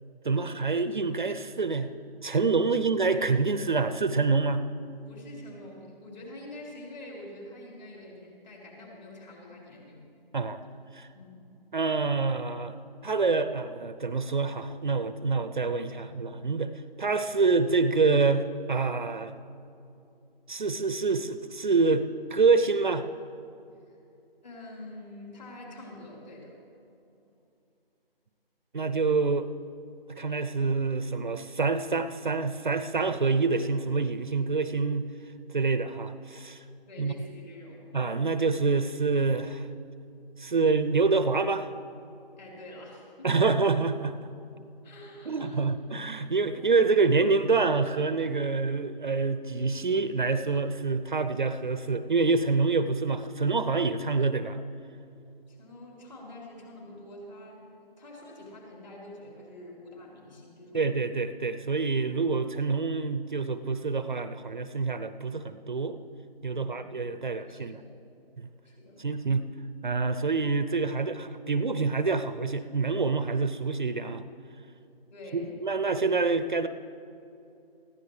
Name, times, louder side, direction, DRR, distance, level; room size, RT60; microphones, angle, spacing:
voice 1, 0.2-1.9 2.2-4.6 10.3-10.6 10.9-11.1 11.7-12.7 13.0-16.7 17.0-19.3 20.5-23.1 28.7-29.5 30.1-35.1 35.5-36.6 37.0-37.2 37.9-39.7 40.4-41.7 43.2-44.2 45.3-54.6 60.7-66.0 66.4-67.8 68.4-68.5 69.0-69.5 69.8-74.2 75.3-76.7, right 4 dB, 50° right, 11 dB, 0.6 m, -26 dB
voice 2, 5.1-10.0 11.1-11.4 23.9-24.0 24.4-26.6 36.9-37.8 42.3-43.6 44.8-45.6 46.5-46.7 55.5-60.8 66.5-66.8 67.3-68.0 68.6-69.0 75.1-75.6, left 1 dB, 45° left, -3 dB, 4.1 m, -46 dB
20.5 x 15.0 x 3.3 m, 2.7 s
figure-of-eight pair, 165°, 30 cm